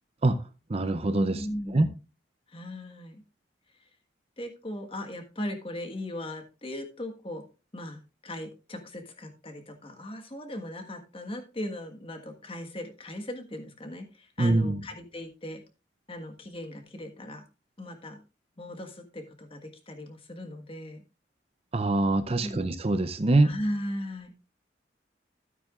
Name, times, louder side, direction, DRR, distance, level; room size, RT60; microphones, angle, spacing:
voice 1, 0.7-1.5 1.7-1.9 14.4-14.8 21.7-23.5, right 2 dB, 35° right, 0.6 m, -24 dB
voice 2, 1.3-1.9 2.5-3.2 4.4-7.4 7.7-15.6 16.1-17.4 17.8-18.2 18.6-21.0 22.4-22.7 23.4-24.4, left 1 dB, 30° left, 1.5 m, -38 dB
13.0 x 8.9 x 2.4 m
head